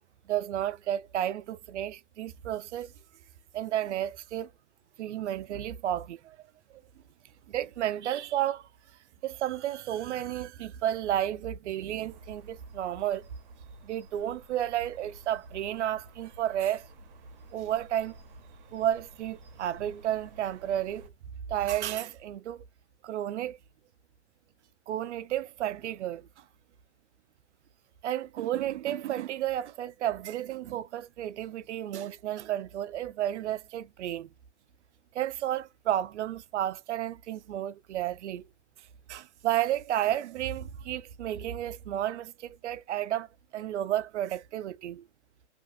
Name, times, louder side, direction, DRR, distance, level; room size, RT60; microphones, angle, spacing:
voice 1, 0.3-2.9 3.5-4.5 5.0-6.4 7.5-8.7 9.2-13.3 13.8-16.9 17.5-18.2 18.7-21.1 21.5-22.6 23.0-23.6 24.9-26.3 28.0-34.3 35.1-38.4 39.1-43.3 43.5-45.0, right 12 dB, 85° right, 0.5 m, -32 dB
sound 1, 12.0-21.1, right 2 dB, 40° right, 0.8 m, -51 dB
2.8 x 2.6 x 2.4 m
hypercardioid pair, 160°, 34 cm